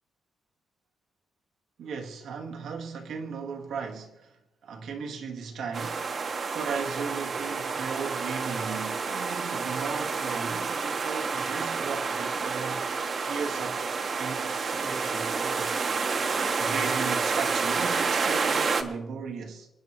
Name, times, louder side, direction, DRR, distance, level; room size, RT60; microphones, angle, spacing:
voice 1, 1.8-13.9 14.2-15.8 16.6-19.7, right 5 dB, 80° right, 1.6 m, -37 dB
sound 1, 5.7-18.8, right 4 dB, 45° right, 1.1 m, -29 dB
28.0 x 9.8 x 3.0 m
cardioid pair, 140°, 0 cm